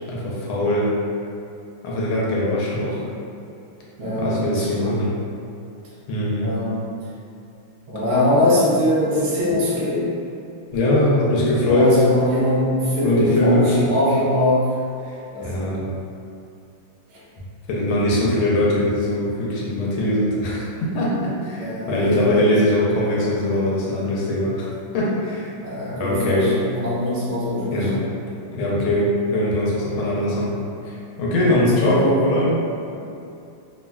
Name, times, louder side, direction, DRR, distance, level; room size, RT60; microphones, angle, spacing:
voice 1, 0.1-0.9 1.8-3.0 4.2-5.1 6.1-6.5 10.7-12.0 13.0-13.8 15.0-15.9 17.7-24.7 24.9-25.5 26.0-26.4 27.7-28.0 28.5-30.5 30.8-32.5, left 1 dB, 90° left, -5 dB, 1.4 m, -21 dB
voice 2, 4.0-5.0 6.4-6.7 7.9-10.2 11.6-14.8 15.3-15.7 17.1-17.2 21.6-22.3 25.6-27.9 30.1-30.2 31.4-32.2, left 1 dB, 80° right, -8 dB, 0.6 m, -22 dB
3.6 x 2.1 x 2.3 m, 2.6 s
omnidirectional pair, 2.2 m